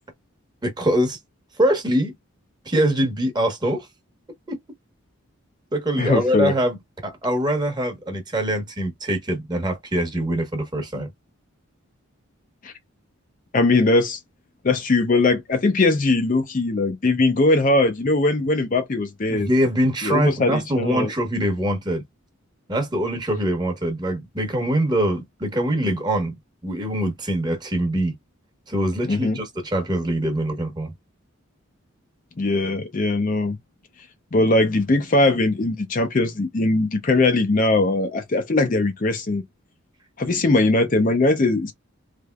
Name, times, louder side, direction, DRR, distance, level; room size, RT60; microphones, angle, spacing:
voice 1, 0.6-1.2 1.6-2.1 2.7-3.9 5.7-6.8 7.0-11.1 19.3-22.0 22.7-26.3 26.6-28.1 28.7-30.9 40.3-40.4, right 1 dB, 20° right, 1.0 m, -23 dB
voice 2, 6.0-6.5 12.6-12.7 13.5-14.2 14.6-19.5 20.0-21.1 29.1-29.4 32.4-33.6 34.3-39.4 40.2-41.7, left 2 dB, 35° left, 0.5 m, -20 dB
3.4 x 3.1 x 2.3 m
head